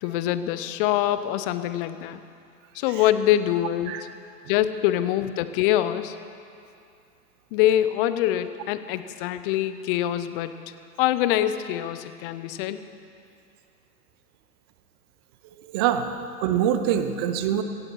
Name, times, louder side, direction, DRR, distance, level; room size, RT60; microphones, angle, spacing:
voice 1, 0.0-2.2 2.7-4.0 4.5-6.2 7.5-10.5 11.0-12.8, left 12 dB, 35° left, 12 dB, 0.7 m, -24 dB
voice 2, 15.6-16.1 16.4-17.6, right 10 dB, 15° right, 9 dB, 0.3 m, -24 dB
16.5 x 16.0 x 4.6 m, 2.5 s
hypercardioid pair, 110°, 49 cm